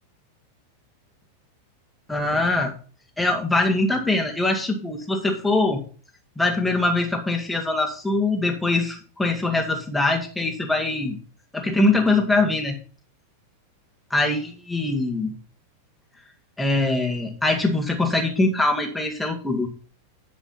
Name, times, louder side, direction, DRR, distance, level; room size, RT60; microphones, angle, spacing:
voice 1, 2.1-2.7 3.2-5.8 6.4-11.2 11.5-12.8 14.1-15.3 16.6-19.7, left 2 dB, 5° left, 2 dB, 2.0 m, -23 dB
10.0 x 5.1 x 5.7 m, 0.38 s
figure-of-eight pair, 90°, 0 cm